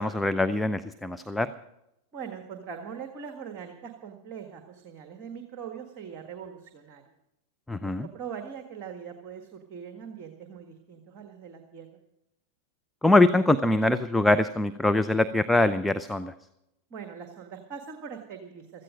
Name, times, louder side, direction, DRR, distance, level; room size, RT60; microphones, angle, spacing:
voice 1, 0.0-1.5 7.7-8.1 13.0-16.3, left 2 dB, 5° left, 10 dB, 0.6 m, -23 dB
voice 2, 2.1-7.0 7.8-11.9 16.9-18.8, right 7 dB, 35° right, 5 dB, 1.6 m, -41 dB
16.0 x 13.5 x 5.2 m, 0.85 s
figure-of-eight pair, 90°, 0 cm